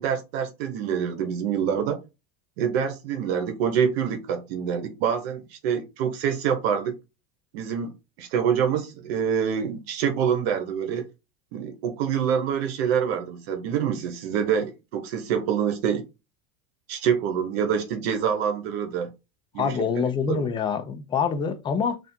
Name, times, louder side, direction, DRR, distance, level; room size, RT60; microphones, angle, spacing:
voice 1, 0.0-2.0 2.6-6.9 7.5-11.1 11.5-16.0 16.9-19.1 19.5-19.8 20.3-20.5, right 7 dB, 80° right, 0.9 m, -26 dB
voice 2, 19.6-22.0, left 6 dB, 15° left, 0.4 m, -25 dB
3.4 x 2.5 x 4.1 m
supercardioid pair, 145°, 30 cm